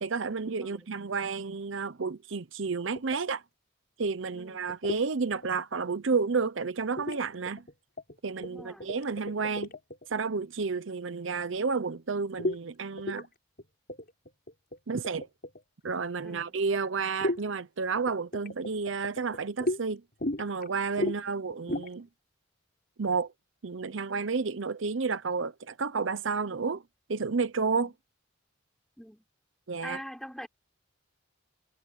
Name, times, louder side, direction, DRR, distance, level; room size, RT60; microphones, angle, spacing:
voice 1, 0.0-3.4 4.0-7.6 8.2-9.7 10.1-13.3 14.9-15.3 15.8-20.0 20.4-22.1 23.0-23.3 23.6-26.8 27.1-27.9 29.7-30.0, right 4 dB, 70° right, 0.7 m, -31 dB
voice 2, 0.6-0.9 4.3-4.6 8.3-8.9 16.2-16.6 21.0-21.7 27.7-27.9 29.0-29.3 29.8-30.5, equal, ahead, 4.7 m, -45 dB
sound 1, 3.0-3.2 4.7-5.0 5.4-5.8 7.0-7.2 7.5-8.2 8.4-10.1 12.4-12.6 13.0-13.3 13.6-13.7 13.9-15.6 17.2-17.4 18.0-19.8 20.2-20.7 21.0-21.2 21.5-21.9, left 1 dB, 50° left, 5.3 m, -33 dB
head